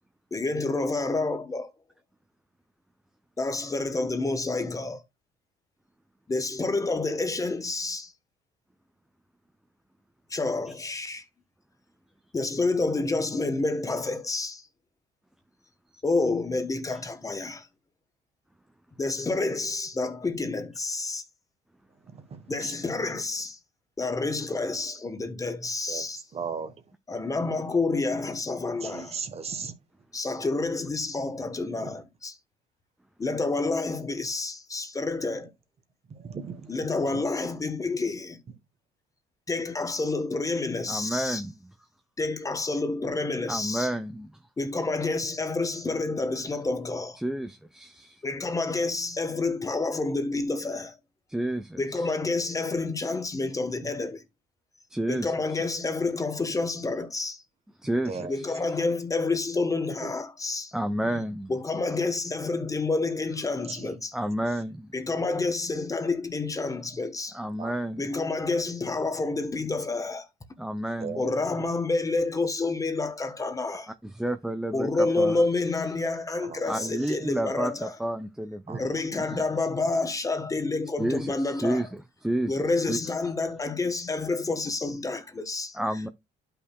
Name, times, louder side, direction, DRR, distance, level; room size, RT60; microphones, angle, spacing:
voice 1, 0.3-1.7 3.4-5.0 6.3-8.1 10.3-11.2 12.3-14.7 16.0-17.7 19.0-21.2 22.5-23.6 24.0-26.2 27.1-29.2 30.1-32.3 33.2-35.5 36.7-38.4 39.5-41.4 42.2-43.9 44.6-47.2 48.2-50.9 51.8-54.2 55.1-57.4 58.3-60.7 61.5-64.2 64.9-67.4 68.0-70.3 71.2-73.9 74.7-78.0 78.8-81.9 82.5-85.8, left 3 dB, 20° left, 1.1 m, -29 dB
voice 2, 22.1-22.7 25.9-26.1 26.3-26.7 28.8-29.7 36.2-37.2 53.8-53.9 58.1-58.3 60.0-60.1 63.7-63.9 67.6-67.7 68.1-68.4 71.0-71.3 76.4-76.9 78.7-78.9, right 6 dB, 40° right, 1.1 m, -37 dB
voice 3, 40.9-41.7 43.5-44.4 47.2-48.2 51.3-52.1 54.9-55.7 57.8-58.6 60.7-61.5 64.1-64.9 67.3-68.1 70.6-71.2 73.9-75.5 76.7-78.8 79.1-79.4 81.0-83.1 85.7-86.1, right 1 dB, 5° right, 0.5 m, -31 dB
12.0 x 5.7 x 2.2 m
cardioid pair, 110°, 17 cm